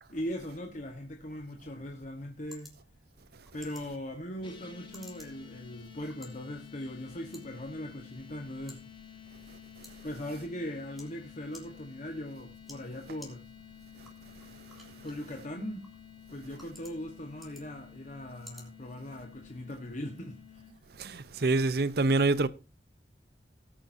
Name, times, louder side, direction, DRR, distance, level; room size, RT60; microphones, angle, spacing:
voice 1, 0.0-2.7 3.5-8.8 10.0-13.4 15.0-15.9 16.3-20.7, left 1 dB, 45° left, 1.3 m, -40 dB
sound 1, 1.6-19.6, left 1 dB, ahead, 3.4 m, -58 dB
sound 2, 4.4-20.7, left 9 dB, 30° left, 1.7 m, -52 dB
voice 2, 21.0-22.5, right 3 dB, 60° right, 0.7 m, -26 dB
18.5 x 8.9 x 2.7 m
head